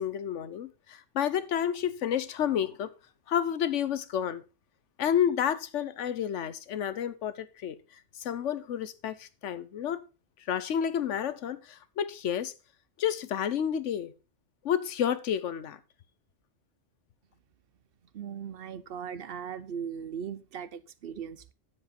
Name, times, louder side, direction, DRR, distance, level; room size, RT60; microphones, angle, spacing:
voice 1, 0.0-2.9 3.3-4.4 5.0-7.7 8.2-10.0 10.5-12.5 13.0-14.1 14.6-15.8, left 9 dB, 80° left, 1.1 m, -30 dB
voice 2, 18.1-21.5, right 7 dB, 60° right, 0.8 m, -38 dB
9.6 x 7.6 x 4.2 m
omnidirectional pair, 1.2 m